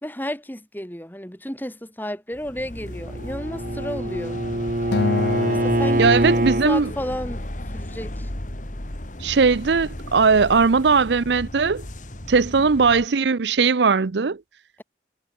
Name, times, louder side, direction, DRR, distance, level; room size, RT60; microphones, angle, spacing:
voice 1, 0.0-4.4 5.4-7.5 7.7-8.3, equal, 10° left, 4.8 m, -32 dB
sound 1, 2.3-13.1, left 1 dB, 45° left, 2.4 m, -35 dB
Bowed string instrument, 2.9-6.7, right 1 dB, 45° right, 1.7 m, -24 dB
Acoustic guitar, 4.9-7.3, left 4 dB, 70° left, 0.5 m, -28 dB
voice 2, 6.0-6.9 9.2-11.9 12.3-14.4, right 5 dB, 75° right, 0.6 m, -19 dB
head